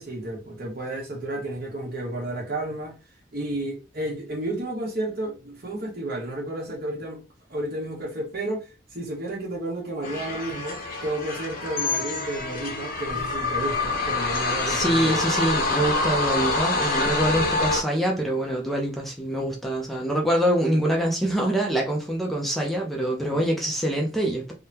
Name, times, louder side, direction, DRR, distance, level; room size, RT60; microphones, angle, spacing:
voice 1, 0.0-3.0 3.3-7.2 7.5-15.3 23.3-23.4, right 1 dB, 55° right, 1.4 m, -32 dB
sound 1, 10.0-17.8, left 3 dB, 55° left, 0.9 m, -26 dB
voice 2, 14.7-24.5, right 1 dB, ahead, 0.6 m, -25 dB
3.5 x 2.2 x 2.8 m
head